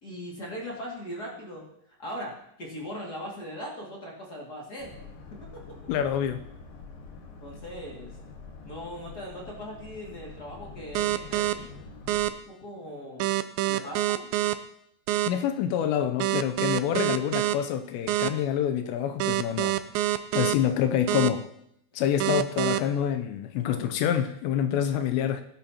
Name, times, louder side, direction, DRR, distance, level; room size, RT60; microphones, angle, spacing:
voice 1, 0.0-1.6 2.0-5.0 5.3-5.6 7.4-8.1 8.6-11.9 12.5-13.3 13.7-14.3 22.0-22.1, equal, 30° left, -3 dB, 1.9 m, -39 dB
Boat Water vehicle, 4.8-12.3, left 4 dB, 60° left, 2.8 m, -46 dB
voice 2, 5.9-6.4 15.3-19.8 20.3-21.4 21.9-25.4, left 9 dB, 80° left, 9 dB, 2.8 m, -27 dB
sound 1, 10.9-11.5 12.1-12.3 13.2-14.5 15.1-15.3 16.2-17.5 18.1-18.3 19.2-20.5 21.1-21.3 22.2-22.8, right 15 dB, 85° right, 2.8 m, -25 dB
17.5 x 11.0 x 2.9 m, 0.76 s
omnidirectional pair, 5.1 m